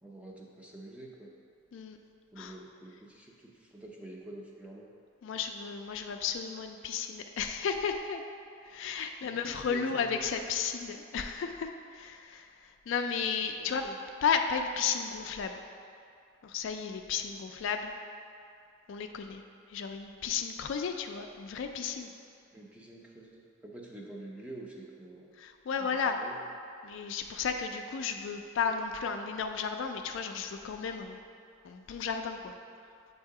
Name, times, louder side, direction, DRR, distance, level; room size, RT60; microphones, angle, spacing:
voice 1, 0.0-1.3 2.3-4.9 9.2-10.2 13.6-14.0 22.5-25.3 25.8-26.4, right 1 dB, 5° right, -2 dB, 0.5 m, -47 dB
voice 2, 5.2-8.2 8.6-13.8 14.2-15.6 16.4-17.9 18.9-19.4 19.7-22.1 25.4-26.2 26.8-31.2 31.6-32.5, left 6 dB, 60° left, 5 dB, 0.3 m, -33 dB
7.3 x 2.7 x 4.7 m, 2.5 s
head